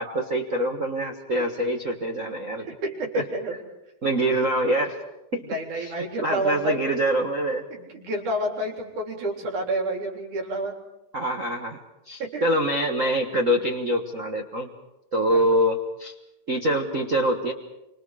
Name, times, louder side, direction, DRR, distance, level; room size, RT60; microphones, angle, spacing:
voice 1, 0.0-2.7 3.1-3.2 4.0-5.0 5.3-5.5 5.8-5.9 6.2-7.6 11.1-11.8 12.1-14.7 15.1-16.1 16.5-17.5, right 1 dB, 40° right, 0 dB, 1.1 m, -25 dB
voice 2, 2.7-3.5 5.5-6.8 7.7-10.7 12.2-12.5 15.3-15.4, right 1 dB, 80° right, 0 dB, 5.2 m, -29 dB
29.5 x 25.0 x 5.0 m, 0.93 s
omnidirectional pair, 3.4 m